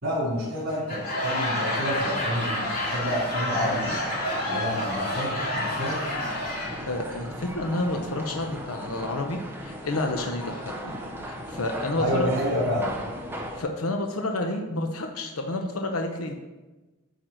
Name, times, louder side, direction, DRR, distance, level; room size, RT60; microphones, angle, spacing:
voice 1, 0.0-4.0 4.5-6.0 11.9-12.9, equal, 55° right, -8 dB, 3.2 m, -29 dB
Laughter / Crowd, 0.7-6.9, left 1 dB, 40° left, 3.0 m, -29 dB
sound 1, 1.9-13.6, equal, 10° right, 0.8 m, -38 dB
voice 2, 6.8-11.0 11.2-12.3 13.3-16.3, left 2 dB, 75° left, 3 dB, 0.8 m, -30 dB
9.0 x 4.7 x 6.1 m, 1.2 s
head